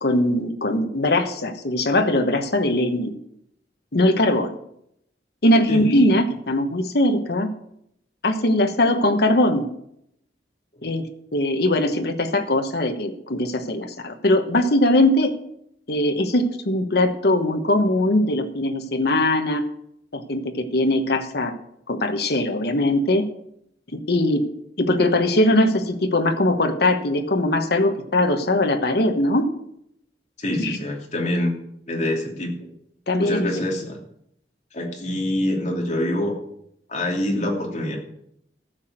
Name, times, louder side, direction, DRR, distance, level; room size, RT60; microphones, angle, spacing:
voice 1, 0.0-3.1 3.9-4.5 5.4-7.5 8.2-9.7 10.8-11.1 11.3-15.3 15.9-19.6 20.1-21.5 21.9-23.2 23.9-24.4 24.8-29.5 30.6-30.8 33.1-33.5, left 1 dB, 60° left, 6 dB, 1.2 m, -20 dB
voice 2, 30.4-31.5 31.9-32.7 33.2-34.0 34.7-36.3 36.9-38.0, left 1 dB, 40° left, -1 dB, 2.9 m, -25 dB
14.5 x 6.1 x 7.7 m, 0.74 s
head